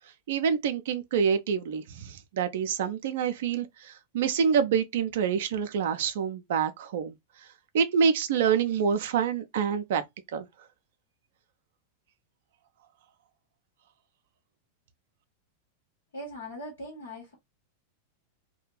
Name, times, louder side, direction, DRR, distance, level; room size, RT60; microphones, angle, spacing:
voice 1, 0.3-7.1 7.7-10.0 10.3-10.4, right 7 dB, 55° right, 0.3 m, -27 dB
voice 2, 16.1-17.3, equal, 75° left, 0.9 m, -40 dB
2.4 x 2.1 x 3.0 m
figure-of-eight pair, 90°, 0 cm